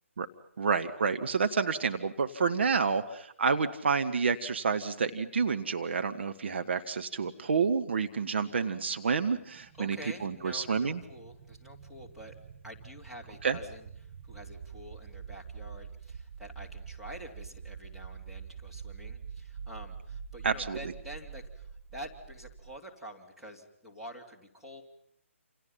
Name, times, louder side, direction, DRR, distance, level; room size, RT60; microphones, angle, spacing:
voice 1, 0.6-11.0 13.4-13.6 20.4-20.8, right 5 dB, 50° right, 7 dB, 1.4 m, -29 dB
sound 1, 7.1-22.8, right 6 dB, 30° right, 1.4 m, -46 dB
voice 2, 9.8-12.4 12.6-24.8, equal, 5° right, -4 dB, 3.2 m, -47 dB
28.5 x 28.5 x 5.7 m, 0.70 s
figure-of-eight pair, 140°, 8 cm